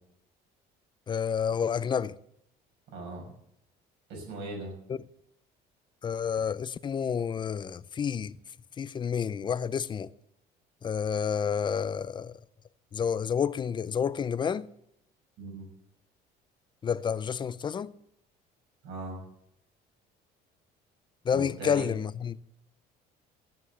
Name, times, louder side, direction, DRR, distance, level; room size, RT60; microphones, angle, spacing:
voice 1, 1.1-2.1 4.9-5.0 6.0-8.4 8.8-10.1 10.8-12.4 12.9-14.7 16.8-17.9 21.2-22.4, left 7 dB, 25° left, 0.5 m, -29 dB
voice 2, 2.9-3.3 4.1-4.7 15.4-15.7 18.8-19.2 21.3-21.9, right 2 dB, 80° right, 6.0 m, -39 dB
14.0 x 9.7 x 7.0 m
cardioid pair, 140°, 18 cm